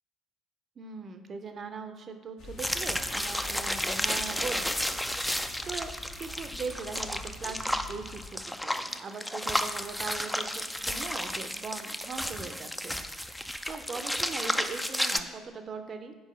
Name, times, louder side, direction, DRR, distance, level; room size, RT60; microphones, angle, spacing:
voice 1, 0.8-5.0 5.6-5.9 6.2-13.0 13.7-16.1, right 5 dB, 40° right, 7 dB, 0.6 m, -40 dB
sound 1, 2.4-8.3, left 1 dB, 60° left, 1.1 m, -46 dB
sound 2, 2.6-15.2, equal, 5° left, 0.4 m, -32 dB
5.5 x 4.7 x 5.2 m, 1.3 s
figure-of-eight pair, 50°, 0 cm